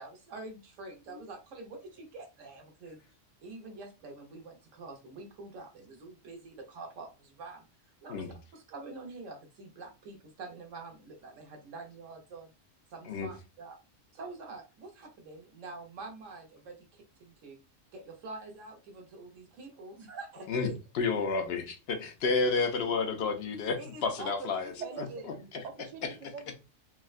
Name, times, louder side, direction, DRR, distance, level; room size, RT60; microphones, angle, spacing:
voice 1, 0.0-3.0 3.4-7.7 8.0-12.5 12.9-13.8 14.1-17.6 17.9-20.8 23.8-24.5 24.8-25.2, right 3 dB, 80° right, 1.2 m, -46 dB
voice 2, 20.9-24.7 25.5-25.6, left 4 dB, 60° left, 0.8 m, -30 dB
voice 3, 24.8-26.5, right 6 dB, 55° right, 0.4 m, -44 dB
3.5 x 2.1 x 2.4 m
omnidirectional pair, 1.3 m